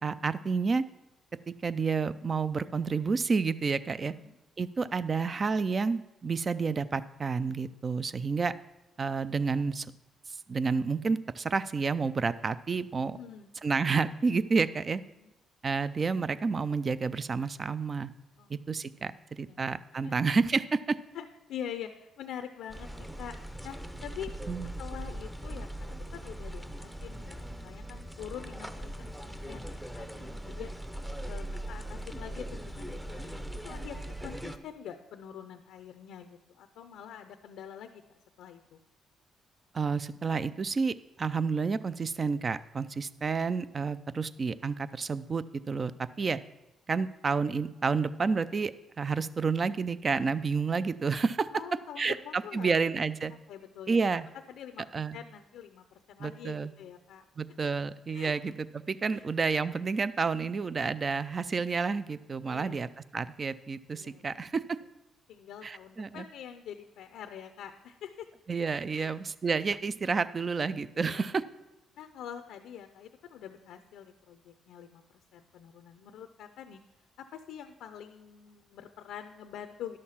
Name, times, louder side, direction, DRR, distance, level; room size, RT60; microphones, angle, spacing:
voice 1, 0.0-0.8 1.5-4.1 4.6-8.5 9.0-9.9 10.5-13.2 13.6-15.0 15.6-18.1 18.7-21.0 24.5-24.7 39.7-45.9 46.2-46.4 46.9-48.7 49.0-53.3 53.9-54.3 54.9-55.2 56.2-56.7 57.4-64.8 65.6-66.3 68.5-71.4, right 4 dB, 40° right, 15 dB, 0.4 m, -30 dB
voice 2, 4.0-4.4 13.1-13.5 14.7-15.3 18.4-18.6 19.0-19.6 19.9-20.1 21.1-23.4 23.6-24.3 24.8-30.7 31.2-38.0 38.4-38.8 51.5-52.7 53.5-54.0 54.3-54.8 55.1-57.2 58.1-58.5 59.1-59.2 62.5-62.9 63.9-64.3 65.3-68.3 68.9-69.1 70.9-71.3 72.0-75.0 75.3-76.8 77.2-80.0, left 9 dB, 85° left, 8 dB, 0.5 m, -45 dB
The Office, 22.7-34.6, right 1 dB, 5° right, 0.7 m, -40 dB
11.0 x 6.5 x 5.6 m, 0.94 s
cardioid pair, 90°, 0 cm